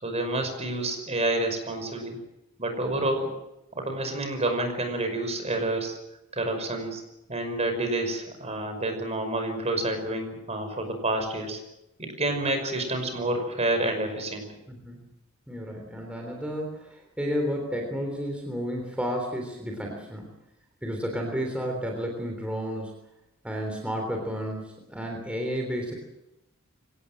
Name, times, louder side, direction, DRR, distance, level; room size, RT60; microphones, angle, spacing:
voice 1, 0.0-2.2 2.6-3.3 3.7-6.0 6.3-7.0 7.3-11.6 12.0-14.5, right 2 dB, 30° right, 6 dB, 5.6 m, -28 dB
voice 2, 14.7-15.1 15.5-20.3 20.8-23.0 23.4-25.9, equal, 5° right, 1 dB, 3.5 m, -32 dB
24.5 x 18.5 x 7.8 m, 0.91 s
head